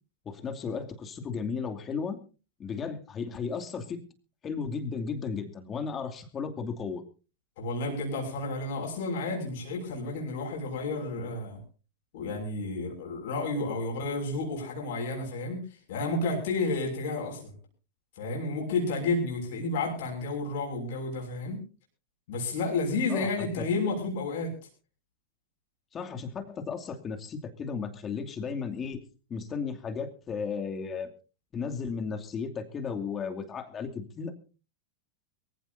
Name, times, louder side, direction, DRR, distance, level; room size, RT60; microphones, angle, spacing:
voice 1, 0.2-2.2 2.6-4.0 4.4-7.0 23.1-23.7 25.9-29.0 29.3-31.1 31.5-34.3, left 5 dB, 30° left, 5 dB, 2.5 m, -34 dB
voice 2, 7.6-11.6 12.1-15.6 15.9-17.5 18.2-21.6 22.3-24.5, left 3 dB, 65° left, 0 dB, 6.3 m, -31 dB
23.0 x 16.0 x 2.7 m, 0.33 s
hypercardioid pair, 95°, 0 cm